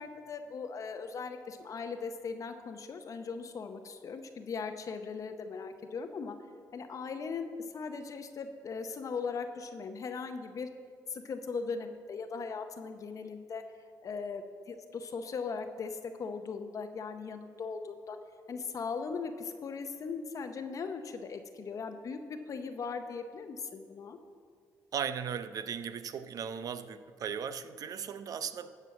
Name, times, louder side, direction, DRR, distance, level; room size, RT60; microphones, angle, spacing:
voice 1, 0.0-6.4 6.7-10.7 11.1-13.6 14.0-18.2 18.5-24.2, left 5 dB, 50° left, 7 dB, 0.8 m, -39 dB
voice 2, 24.9-28.8, right 7 dB, 55° right, 12 dB, 0.6 m, -37 dB
13.0 x 4.6 x 7.0 m, 2.1 s
supercardioid pair, 70°, 7 cm